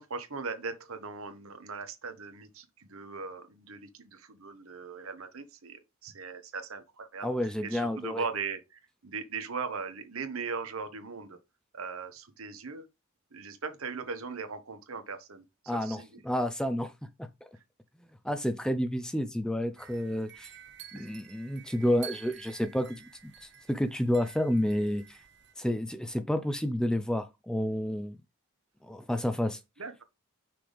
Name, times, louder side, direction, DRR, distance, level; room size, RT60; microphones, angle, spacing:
voice 1, 0.0-11.4 11.7-12.9 13.3-15.4 15.7-16.2 20.9-21.1 29.8-30.0, right 5 dB, 75° right, 1.1 m, -39 dB
voice 2, 7.2-8.2 15.7-16.9 17.2-17.3 18.2-20.5 20.9-25.2 25.6-28.2 28.8-29.6, left 1 dB, 5° left, 0.4 m, -30 dB
sound 1, 19.8-25.5, right 9 dB, 50° right, 0.8 m, -50 dB
6.0 x 5.0 x 3.5 m
head